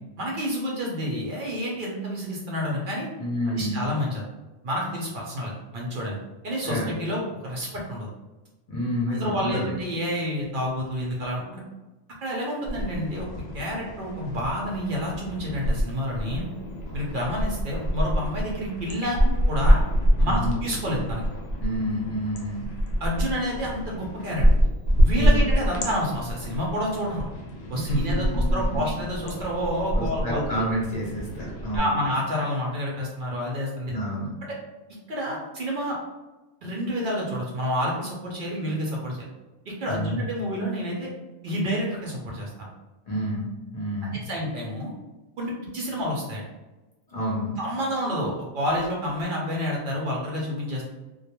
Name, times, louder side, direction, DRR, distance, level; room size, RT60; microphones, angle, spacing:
voice 1, 0.2-3.1 3.5-4.2 4.6-6.2 6.4-8.1 9.1-11.6 12.2-13.3 13.5-16.5 16.9-19.2 19.5-19.8 20.2-21.2 23.0-24.5 25.0-27.3 27.7-30.6 31.7-34.0 35.1-36.0 36.6-39.2 39.7-41.1 41.4-42.7 44.2-44.9 45.4-46.4 47.6-50.8, equal, 60° right, -3 dB, 0.7 m, -29 dB
voice 2, 3.2-3.8 6.6-6.9 8.7-9.7 20.2-20.5 21.6-22.7 25.1-25.4 27.7-28.8 30.0-31.9 33.9-34.3 39.9-40.2 43.1-44.2 47.1-47.6, equal, 45° left, -6 dB, 0.7 m, -29 dB
sound 1, 12.7-15.8 16.1-31.8, equal, 75° left, 0.8 m, -26 dB
2.2 x 2.2 x 2.9 m, 1.1 s
omnidirectional pair, 1.1 m